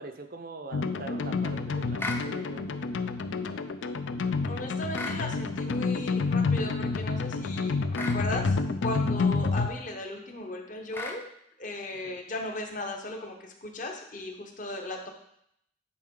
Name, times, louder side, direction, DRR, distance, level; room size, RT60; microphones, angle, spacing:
voice 1, 0.0-2.7 12.0-12.2, right 3 dB, 45° right, 7 dB, 0.5 m, -43 dB
sound 1, 0.7-9.7, left 4 dB, 70° left, 0.4 m, -29 dB
sound 2, 2.0-2.3 4.9-5.2 7.9-8.2 10.9-11.2, left 2 dB, 10° left, 0.5 m, -35 dB
voice 2, 4.5-11.3 11.6-15.1, left 2 dB, 40° left, 3 dB, 0.9 m, -36 dB
9.7 x 4.4 x 3.7 m, 0.72 s
head